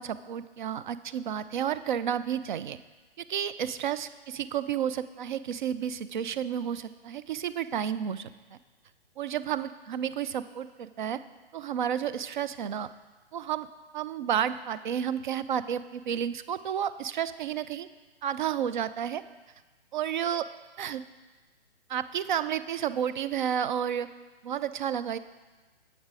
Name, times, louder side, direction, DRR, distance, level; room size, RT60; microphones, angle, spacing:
voice 1, 0.0-2.8 3.2-8.3 9.2-11.2 11.5-12.9 13.3-13.7 13.9-17.9 18.2-19.2 19.9-20.5 20.8-21.0 21.9-24.1 24.4-25.2, right 9 dB, 50° right, 14 dB, 0.4 m, -31 dB
7.9 x 7.6 x 4.8 m, 1.3 s
hypercardioid pair, 135°, 32 cm